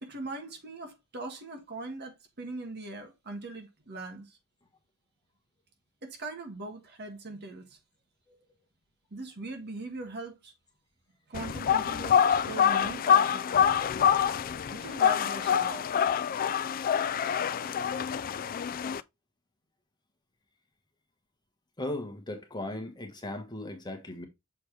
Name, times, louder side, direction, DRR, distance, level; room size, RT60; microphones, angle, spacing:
voice 1, 0.0-4.4 6.0-7.8 9.1-10.5 11.3-13.8 14.7-16.1, right 2 dB, 50° right, 1.6 m, -40 dB
sound 1, 11.3-19.0, left 8 dB, 40° left, 0.3 m, -26 dB
voice 2, 21.8-24.3, left 1 dB, 20° left, 1.3 m, -37 dB
6.9 x 4.2 x 3.3 m
head